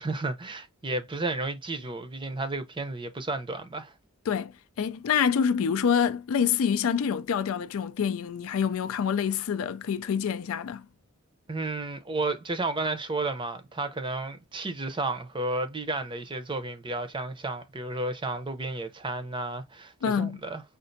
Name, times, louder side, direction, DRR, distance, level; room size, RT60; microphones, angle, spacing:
voice 1, 0.0-3.9 11.5-20.6, right 2 dB, 20° right, 0.6 m, -32 dB
voice 2, 4.8-10.8 20.0-20.4, left 7 dB, 70° left, 0.4 m, -26 dB
5.2 x 2.5 x 2.6 m
head